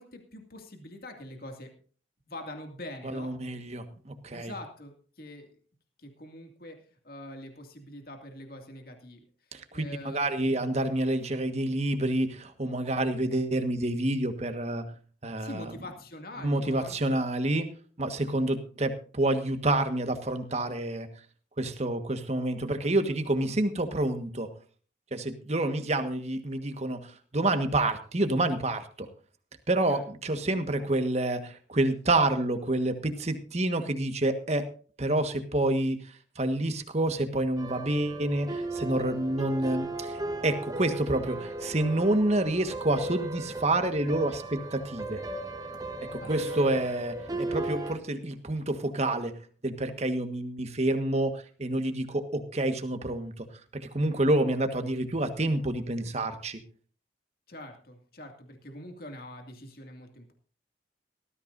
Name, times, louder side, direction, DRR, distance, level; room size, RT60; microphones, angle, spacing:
voice 1, 0.0-1.7 2.3-3.3 4.3-5.5 6.0-9.2 9.7-10.2 15.4-17.2 29.9-30.0 46.2-46.6 57.5-60.3, left 1 dB, 55° left, 4 dB, 2.3 m, -44 dB
voice 2, 3.0-4.5 9.5-14.8 15.2-15.7 16.4-17.7 18.0-21.1 21.6-24.5 25.1-29.1 29.7-34.7 35.0-45.2 46.1-49.3 49.6-53.5 53.7-56.6, right 1 dB, 35° right, 8 dB, 1.4 m, -28 dB
sound 1, 37.6-48.0, right 2 dB, 20° right, 1.3 m, -36 dB
18.5 x 14.0 x 2.6 m, 0.42 s
head